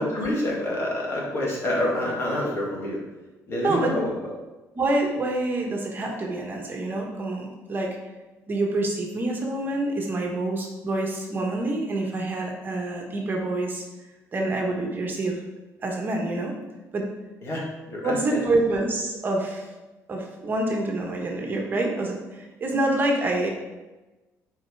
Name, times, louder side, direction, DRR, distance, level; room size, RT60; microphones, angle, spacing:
voice 1, 0.0-3.0 3.5-4.1 17.4-18.4, left 1 dB, 45° left, -3 dB, 2.4 m, -27 dB
voice 2, 3.6-4.0 4.7-8.0 8.5-13.8 14.3-15.4 15.8-16.5 16.9-17.1 18.0-19.6 20.1-23.5, right 2 dB, 35° right, 1 dB, 1.4 m, -27 dB
7.8 x 5.0 x 4.8 m, 1.1 s
cardioid pair, 125°, 6 cm